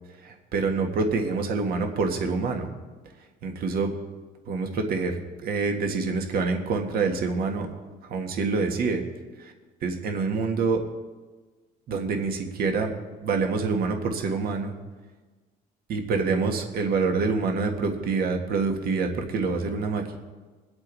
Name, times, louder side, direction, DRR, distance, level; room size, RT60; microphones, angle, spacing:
voice 1, 0.2-2.7 3.4-3.9 4.5-7.7 8.0-9.0 9.4-9.5 9.8-10.8 11.9-12.9 13.2-14.7 15.9-20.2, right 4 dB, 65° right, 4 dB, 1.7 m, -26 dB
22.5 x 8.1 x 4.1 m, 1.3 s
cardioid pair, 110°, 17 cm